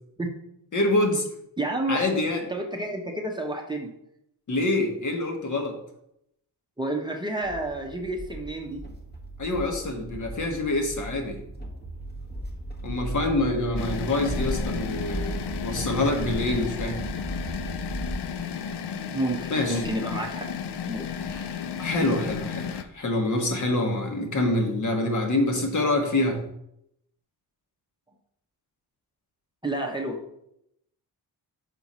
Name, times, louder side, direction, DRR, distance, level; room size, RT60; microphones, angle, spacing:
voice 1, 0.7-1.2 1.9-2.4 4.5-5.8 9.4-11.4 12.8-17.0 19.5-19.8 21.2-26.4, left 2 dB, 50° left, 3 dB, 1.4 m, -26 dB
voice 2, 1.6-2.0 2.5-3.9 6.8-8.8 19.1-20.5 20.9-21.1 22.0-22.3 29.6-30.2, right 1 dB, 10° right, 0 dB, 0.8 m, -30 dB
sound 1, 7.4-18.3, right 1 dB, 25° left, 1.4 m, -36 dB
sound 2, 13.8-22.8, left 7 dB, 75° left, 0.7 m, -33 dB
5.9 x 4.5 x 5.5 m, 0.77 s
wide cardioid pair, 130°, 40 cm